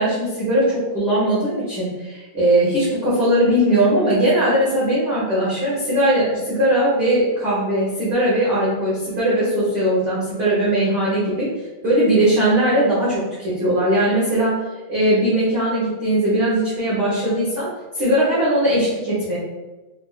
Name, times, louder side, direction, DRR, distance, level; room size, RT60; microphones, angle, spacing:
voice 1, 0.0-11.5 11.8-14.5 14.9-17.7 17.9-19.4, right 1 dB, 85° right, -10 dB, 0.9 m, -19 dB
5.1 x 2.1 x 2.4 m, 1.1 s
omnidirectional pair, 3.7 m